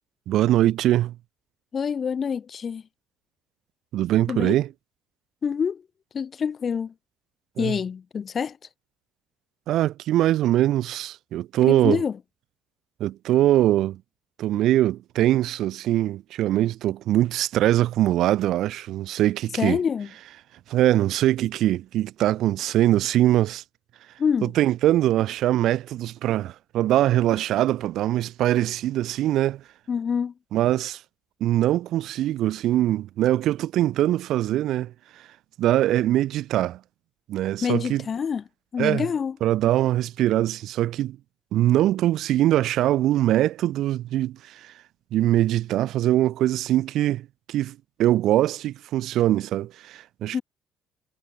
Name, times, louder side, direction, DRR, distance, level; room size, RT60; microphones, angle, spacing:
voice 1, 0.3-1.1 3.9-4.7 7.6-7.8 9.7-12.0 13.0-14.0 14.4-19.8 20.7-23.6 24.4-29.6 30.5-31.0 31.4-34.9 35.6-36.8 37.3-38.0 38.8-39.1 39.4-41.2 41.5-44.7 45.1-50.4, right 13 dB, 60° right, 1.0 m, -22 dB
voice 2, 1.7-2.8 4.3-4.6 5.4-5.8 6.1-6.9 7.6-8.6 11.7-12.2 19.6-20.1 24.2-24.5 29.9-30.3 37.6-38.4 38.7-39.4 50.3-50.4, left 6 dB, 35° left, 2.7 m, -26 dB
cardioid pair, 130°, 0 cm